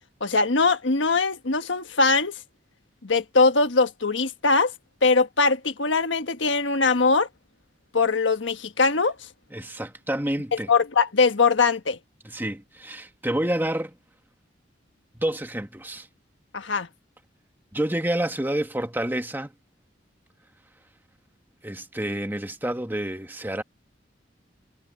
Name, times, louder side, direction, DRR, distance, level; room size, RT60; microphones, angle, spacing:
voice 1, 0.2-2.4 3.0-4.7 5.0-7.3 7.9-9.1 10.7-12.0 16.5-16.9, left 4 dB, 85° left, 1.4 m, -21 dB
voice 2, 9.5-10.7 12.2-13.9 15.1-16.1 17.7-19.5 21.6-23.6, right 1 dB, 10° right, 1.5 m, -28 dB
head